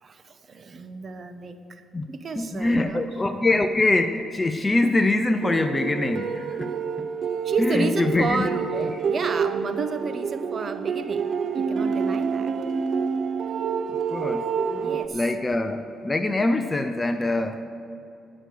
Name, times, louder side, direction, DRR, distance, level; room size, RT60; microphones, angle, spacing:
voice 1, 0.0-3.1 7.4-12.6 14.8-15.2, right 4 dB, 45° right, 9 dB, 1.0 m, -32 dB
voice 2, 2.4-6.7 7.6-8.4 8.7-8.9 14.1-14.4 14.7-17.6, left 2 dB, 20° left, 7 dB, 0.7 m, -24 dB
sound 1, 5.4-15.1, right 6 dB, 60° right, 0.7 m, -28 dB
16.0 x 6.4 x 6.7 m, 2.7 s
cardioid pair, 90°, 0 cm